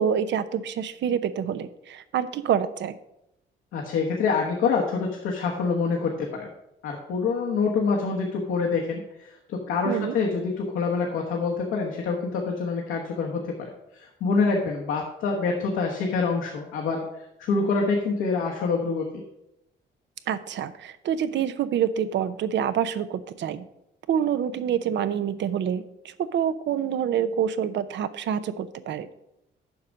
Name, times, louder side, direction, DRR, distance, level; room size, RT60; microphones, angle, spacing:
voice 1, 0.0-3.0 9.8-10.1 20.3-23.7 24.1-29.1, right 8 dB, 65° right, 13 dB, 0.7 m, -27 dB
voice 2, 3.7-6.5 6.8-17.0 17.4-19.1, left 4 dB, 85° left, -1 dB, 1.3 m, -26 dB
7.1 x 5.1 x 7.2 m, 0.86 s
cardioid pair, 90°, 20 cm